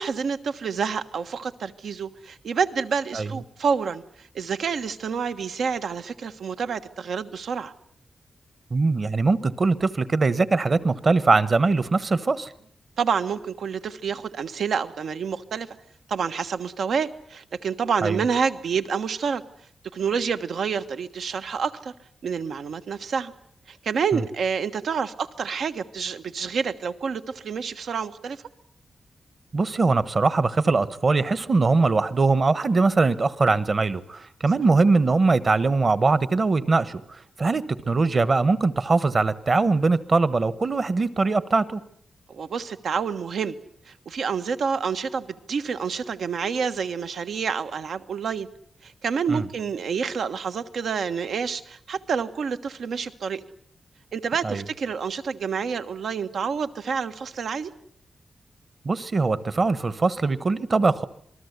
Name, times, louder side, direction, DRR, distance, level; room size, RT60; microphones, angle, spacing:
voice 1, 0.0-7.7 13.0-15.7 16.1-19.4 19.9-21.9 22.2-23.3 23.7-28.4 42.3-43.6 43.9-48.5 48.8-53.4 54.1-57.7, right 6 dB, 85° right, 10 dB, 1.4 m, -28 dB
voice 2, 8.7-12.5 18.0-18.2 24.1-24.2 29.5-37.0 37.4-41.8 49.3-49.4 54.4-54.6 58.8-61.0, right 3 dB, 35° right, 16 dB, 1.2 m, -21 dB
27.0 x 20.5 x 8.2 m, 0.64 s
wide cardioid pair, 155°, 0 cm